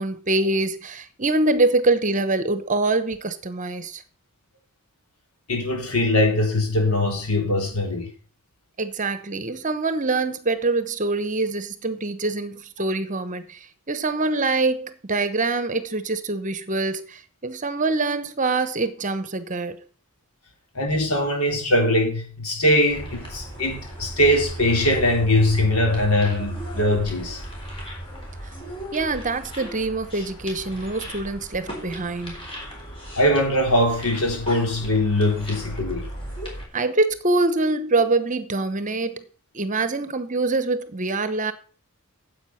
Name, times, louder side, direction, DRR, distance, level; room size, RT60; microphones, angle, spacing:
voice 1, 0.0-4.0 8.8-19.8 28.9-32.4 36.7-39.2 39.5-41.5, right 3 dB, 35° right, 1.0 m, -24 dB
voice 2, 5.5-8.1 20.7-27.4 33.2-36.1, left 1 dB, 80° left, 3.9 m, -21 dB
sound 1, 22.9-36.6, right 1 dB, 25° left, 4.0 m, -36 dB
9.8 x 7.9 x 5.8 m
head